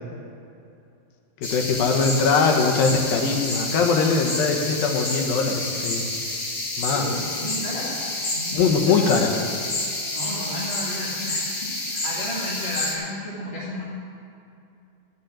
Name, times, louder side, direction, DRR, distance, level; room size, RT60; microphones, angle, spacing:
voice 1, 1.4-6.1 6.8-7.1 8.5-9.4, left 5 dB, 75° left, 2 dB, 2.9 m, -21 dB
sound 1, 1.4-12.9, left 2 dB, 35° left, 2.1 m, -29 dB
voice 2, 6.9-8.0 8.3-9.1 10.1-13.8, left 1 dB, 15° left, -9 dB, 2.0 m, -33 dB
14.0 x 6.4 x 8.8 m, 2.6 s
omnidirectional pair, 4.2 m